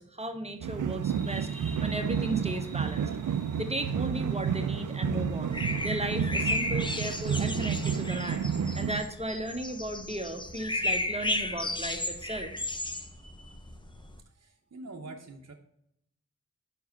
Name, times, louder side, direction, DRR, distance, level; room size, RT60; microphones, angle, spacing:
voice 1, 0.0-3.1 3.6-12.5 13.2-13.6, right 1 dB, 20° right, 6 dB, 1.1 m, -36 dB
sound 1, 0.6-9.0, right 7 dB, 75° right, 0.5 m, -30 dB
sound 2, 1.0-8.2, left 1 dB, 70° left, 2.9 m, -54 dB
sound 3, 5.5-14.2, left 2 dB, 15° left, 0.8 m, -34 dB
voice 2, 14.2-15.5, right 2 dB, 55° right, 2 dB, 0.9 m, -46 dB
5.5 x 4.7 x 5.8 m, 0.76 s
cardioid pair, 50°, 31 cm